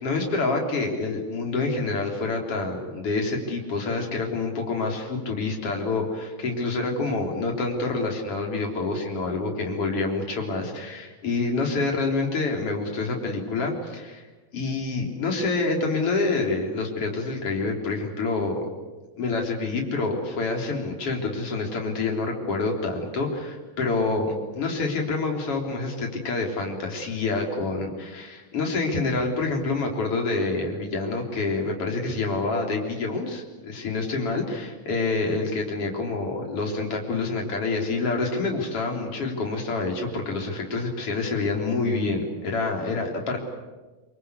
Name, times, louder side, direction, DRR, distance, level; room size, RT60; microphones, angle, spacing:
voice 1, 0.0-14.2 14.5-18.7 19.2-43.4, left 3 dB, 40° left, 1 dB, 4.4 m, -27 dB
25.5 x 24.5 x 8.3 m, 1.2 s
omnidirectional pair, 4.1 m